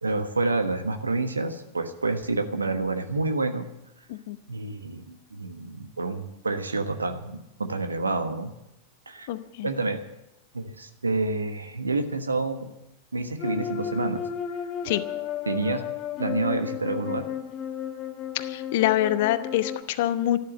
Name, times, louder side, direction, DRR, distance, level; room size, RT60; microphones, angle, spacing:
voice 1, 0.0-3.7 4.5-8.5 9.1-9.3 9.6-10.0 10.5-12.7 13.1-14.3 15.5-15.8 16.2-17.2, right 3 dB, 80° right, 9 dB, 1.3 m, -28 dB
voice 2, 9.3-9.7 14.8-15.0 18.3-20.4, left 13 dB, 50° left, 12 dB, 0.9 m, -25 dB
sound 1, 13.4-19.8, left 9 dB, 35° left, 1.3 m, -33 dB
13.0 x 12.0 x 7.4 m, 0.89 s
figure-of-eight pair, 90°, 0 cm